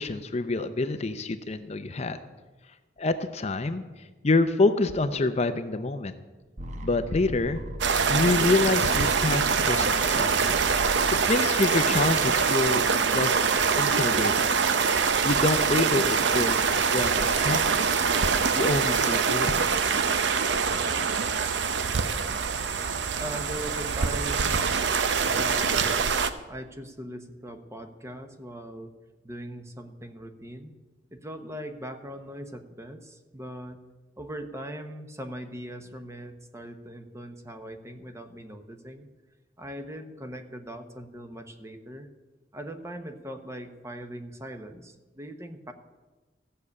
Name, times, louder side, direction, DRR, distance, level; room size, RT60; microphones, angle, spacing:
voice 1, 0.0-2.2 3.0-3.8 4.2-6.1 6.8-7.6 8.1-10.4 11.1-13.4 13.8-14.4 15.2-18.1 18.5-19.7, left 2 dB, 35° left, 9 dB, 0.6 m, -27 dB
sound 1, 6.6-12.6, equal, 40° right, 1.0 m, -39 dB
sound 2, 7.8-26.3, right 5 dB, 70° right, 0.7 m, -24 dB
voice 2, 23.2-24.7 25.2-26.2 26.5-28.9 29.2-30.8 31.1-33.8 34.2-39.1 39.6-42.1 42.5-45.7, right 1 dB, 15° right, 7 dB, 0.9 m, -40 dB
14.5 x 6.7 x 8.5 m, 1.2 s
head